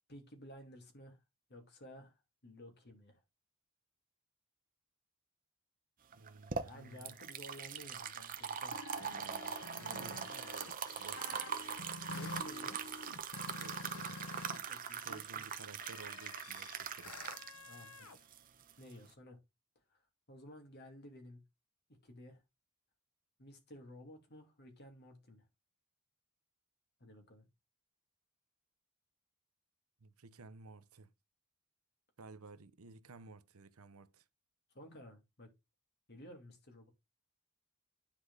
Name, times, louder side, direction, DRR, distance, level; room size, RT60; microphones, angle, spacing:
voice 1, 0.1-1.2 1.5-3.2 6.6-8.8 10.0-10.4 12.1-12.9 14.7-15.4 17.6-18.2 18.8-19.4 19.9-20.0 20.3-21.4 21.9-22.4 23.4-25.4 27.0-27.5 34.7-35.5 36.1-36.9, equal, 50° left, 2.7 m, -54 dB
sound 1, 6.1-19.1, right 7 dB, 40° right, 0.9 m, -42 dB
voice 2, 6.1-7.2 8.9-11.4 13.5-14.2 15.0-17.3 30.0-31.1 32.2-34.2, right 3 dB, 80° right, 0.9 m, -55 dB
sound 2, 8.4-14.6 14.9-18.2, left 3 dB, 85° left, 1.1 m, -49 dB
10.0 x 4.9 x 4.0 m
head